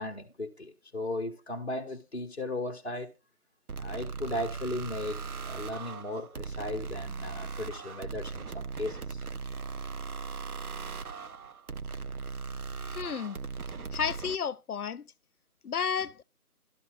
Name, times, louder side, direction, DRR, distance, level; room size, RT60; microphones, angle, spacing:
voice 1, 0.0-3.1 3.8-9.2 13.8-13.9, left 1 dB, 45° left, 0.9 m, -36 dB
sound 1, 3.7-14.4, right 5 dB, 70° right, 0.6 m, -38 dB
voice 2, 12.9-13.4 13.9-15.1 15.6-16.2, left 7 dB, 75° left, 0.5 m, -32 dB
12.0 x 5.6 x 2.3 m
figure-of-eight pair, 165°, 46 cm